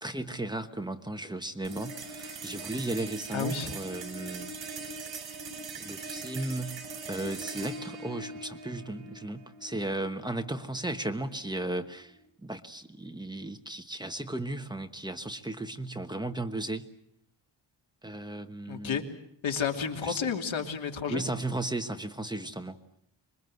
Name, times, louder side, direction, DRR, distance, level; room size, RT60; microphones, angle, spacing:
voice 1, 0.0-4.5 4.8-4.9 5.8-12.1 12.4-16.8 18.0-19.0 20.0-20.2 21.1-22.8, right 2 dB, 10° right, 6 dB, 1.2 m, -35 dB
sound 1, 1.6-12.3, right 3 dB, 75° right, 3.6 m, -42 dB
voice 2, 3.3-3.7 18.7-19.0 19.4-21.2, left 6 dB, 90° left, 4 dB, 2.9 m, -31 dB
26.0 x 22.5 x 7.9 m, 0.71 s
wide cardioid pair, 160°, 46 cm